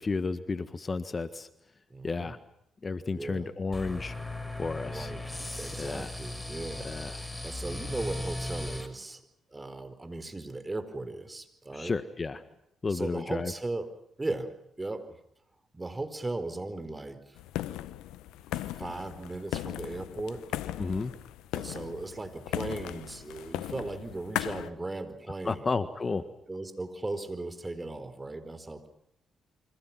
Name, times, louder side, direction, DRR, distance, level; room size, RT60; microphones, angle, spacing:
voice 1, 0.0-1.5 2.0-2.4 2.8-4.1 4.6-5.1 5.8-6.1 6.8-7.2 11.7-12.4 12.8-13.5 20.8-21.1 25.4-26.3, left 4 dB, 35° left, 12 dB, 1.6 m, -32 dB
voice 2, 1.9-2.3 3.1-3.5 4.8-9.2 9.5-11.9 12.9-13.9 14.2-15.2 15.7-17.4 18.5-20.4 21.5-25.7 26.5-28.9, right 2 dB, 20° right, 10 dB, 4.5 m, -37 dB
sound 1, 3.7-8.9, left 2 dB, 5° left, 5.5 m, -37 dB
sound 2, 17.4-24.7, left 13 dB, 80° left, 1.1 m, -37 dB
29.0 x 25.0 x 6.0 m, 0.73 s
hypercardioid pair, 50°, 0 cm